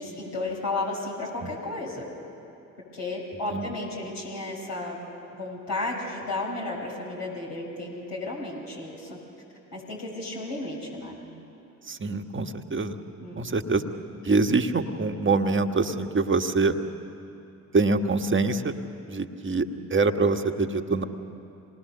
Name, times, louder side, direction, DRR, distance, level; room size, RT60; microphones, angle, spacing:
voice 1, 0.0-2.1 2.9-5.0 5.4-9.2 9.7-11.2 13.2-13.6, left 2 dB, 70° left, -3 dB, 6.4 m, -33 dB
voice 2, 11.9-13.0 13.4-13.8 14.2-16.7 17.7-18.7 19.1-21.0, right 3 dB, 25° right, 7 dB, 1.4 m, -25 dB
27.0 x 19.5 x 6.8 m, 2.8 s
hypercardioid pair, 50°, 44 cm